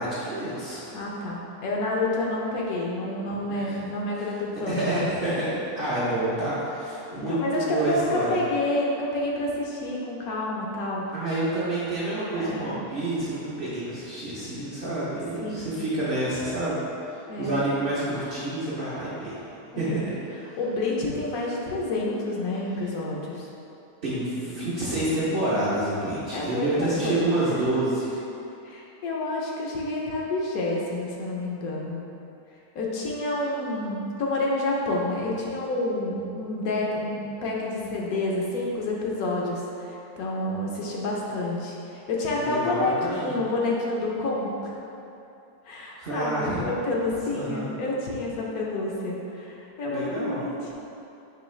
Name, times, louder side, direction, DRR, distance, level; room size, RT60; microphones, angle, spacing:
voice 1, 0.0-1.0 3.3-3.8 4.5-8.4 11.1-19.4 19.8-20.6 24.0-28.2 42.4-43.4 46.0-46.6 47.3-47.7 49.9-50.4, right 1 dB, 50° right, -10 dB, 0.7 m, -28 dB
voice 2, 0.9-5.1 7.1-11.1 12.3-12.8 15.4-15.7 17.3-17.6 19.7-20.0 20.6-23.5 26.3-27.2 28.6-32.0 32.7-44.7 45.7-50.7, left 2 dB, 70° left, -3 dB, 1.0 m, -29 dB
5.4 x 2.8 x 3.1 m, 2.8 s
omnidirectional pair, 1.7 m